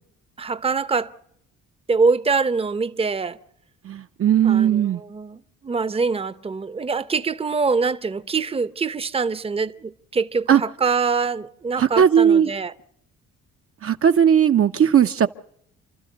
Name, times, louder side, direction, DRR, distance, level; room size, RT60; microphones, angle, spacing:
voice 1, 0.4-1.1 1.9-3.4 4.4-12.7, right 4 dB, 20° right, 0.8 m, -24 dB
voice 2, 3.9-5.0 10.5-10.6 11.8-12.5 13.8-15.3, right 8 dB, 45° right, 0.8 m, -17 dB
29.5 x 12.5 x 8.0 m
cardioid pair, 90°, 30 cm